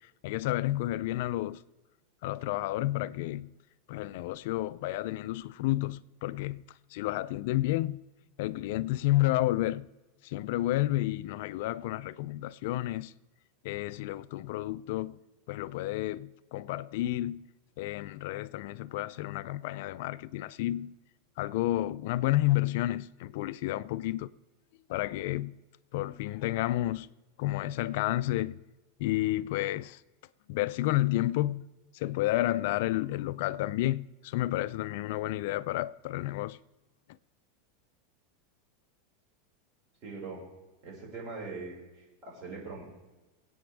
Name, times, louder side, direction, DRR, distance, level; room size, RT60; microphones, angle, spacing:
voice 1, 0.2-1.6 2.2-3.5 3.9-6.6 6.9-8.0 8.4-9.9 10.2-13.1 13.6-15.2 15.5-17.5 17.8-20.9 21.4-24.3 24.9-25.6 25.9-27.1 27.4-28.6 29.0-30.0 30.5-31.7 31.9-36.6, left 16 dB, 60° left, 0.4 m, -31 dB
voice 2, 40.0-40.4 40.8-42.8, right 4 dB, 35° right, 5.5 m, -41 dB
24.0 x 8.7 x 3.5 m
supercardioid pair, 155°, 0 cm